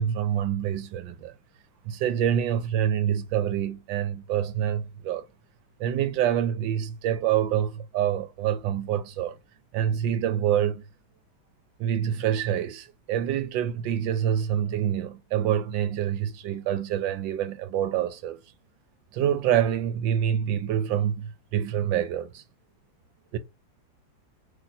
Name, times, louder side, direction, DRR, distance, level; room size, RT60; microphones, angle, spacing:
voice 1, 0.0-1.3 1.9-5.2 5.8-9.3 9.7-10.8 11.8-18.4 19.1-22.4 23.3-23.4, right 10 dB, 75° right, 1.2 m, -26 dB
2.9 x 2.8 x 3.9 m
omnidirectional pair, 2.1 m